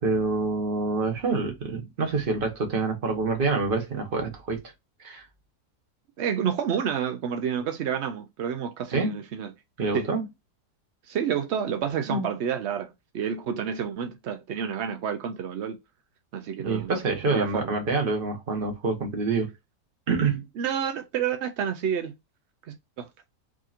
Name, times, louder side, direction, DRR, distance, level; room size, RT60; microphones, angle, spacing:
voice 1, 0.0-4.6 5.0-5.3 8.9-9.1 9.8-10.2 12.1-12.3 16.6-19.5 20.1-20.5, right 3 dB, 40° right, 1.0 m, -26 dB
voice 2, 6.2-9.5 9.9-10.1 11.0-15.8 16.3-17.7 20.6-22.1 22.6-23.1, right 8 dB, 75° right, 0.6 m, -29 dB
4.9 x 2.8 x 2.4 m
omnidirectional pair, 1.8 m